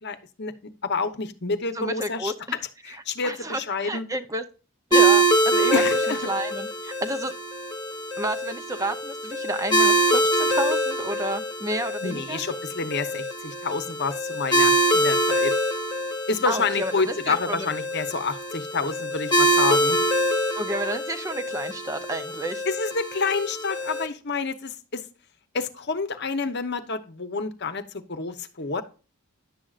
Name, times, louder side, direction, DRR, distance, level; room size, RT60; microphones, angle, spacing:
voice 1, 0.0-2.3 2.8-4.0 5.7-6.2 12.0-15.6 16.3-20.0 22.7-25.0 25.5-28.8, left 4 dB, 50° left, 10 dB, 0.9 m, -28 dB
voice 2, 1.7-2.3 3.2-4.4 4.9-5.8 6.3-7.3 8.2-12.4 16.5-16.9 17.2-17.7 20.5-22.6, right 1 dB, 15° right, 9 dB, 0.6 m, -30 dB
sound 1, 4.9-24.1, right 1 dB, 20° left, 1.3 m, -24 dB
11.0 x 7.5 x 2.4 m, 0.34 s
head